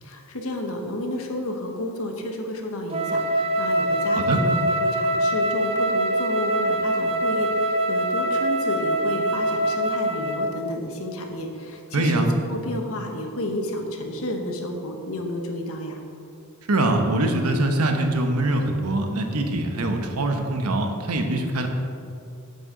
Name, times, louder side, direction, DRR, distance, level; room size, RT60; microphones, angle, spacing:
voice 1, 0.0-16.0, left 1 dB, 70° left, 3 dB, 1.1 m, -31 dB
Wind instrument woodwind instrument, 2.9-10.6, right 1 dB, 25° right, 0.5 m, -24 dB
voice 2, 11.9-12.3 16.7-21.7, right 2 dB, 80° right, 4 dB, 1.0 m, -23 dB
8.4 x 8.0 x 3.8 m, 2.5 s
head